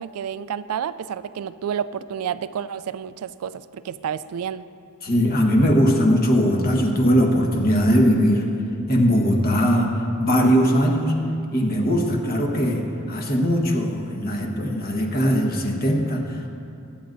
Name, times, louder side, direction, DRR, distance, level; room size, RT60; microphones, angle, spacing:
voice 1, 0.0-4.6, right 8 dB, 75° right, 15 dB, 0.3 m, -30 dB
voice 2, 5.0-8.5 8.9-9.9 10.2-11.1 11.5-16.5, equal, 45° left, 1 dB, 1.3 m, -20 dB
20.5 x 8.8 x 2.6 m, 2.5 s
head